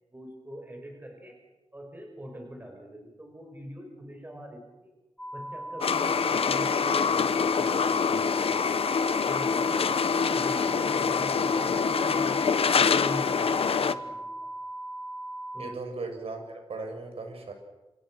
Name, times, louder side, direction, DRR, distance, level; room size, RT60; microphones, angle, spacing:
voice 1, 0.0-1.4 1.7-4.9 5.3-8.4 9.3-14.5 15.5-15.8, equal, 20° right, 3 dB, 5.7 m, -43 dB
sound 1, 5.2-15.7, right 1 dB, 10° left, 3.9 m, -38 dB
sound 2, 5.8-13.9, left 6 dB, 70° left, 1.1 m, -25 dB
voice 2, 15.6-17.5, right 3 dB, 75° right, 4 dB, 7.0 m, -37 dB
28.0 x 27.5 x 6.4 m, 1.1 s
cardioid pair, 75°, 10 cm